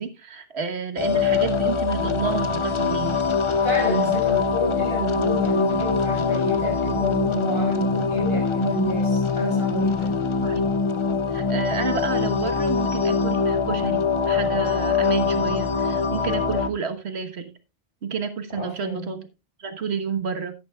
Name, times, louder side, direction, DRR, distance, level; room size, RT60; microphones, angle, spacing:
voice 1, 0.0-3.2 10.4-10.6 11.3-17.5 18.0-19.2 19.6-20.5, right 5 dB, 85° right, 1.5 m, -30 dB
sound 1, 1.0-16.7, left 5 dB, 30° left, 0.7 m, -23 dB
voice 2, 3.6-10.2 18.5-19.2, right 1 dB, 65° left, 5.8 m, -28 dB
12.0 x 11.5 x 2.3 m
omnidirectional pair, 1.1 m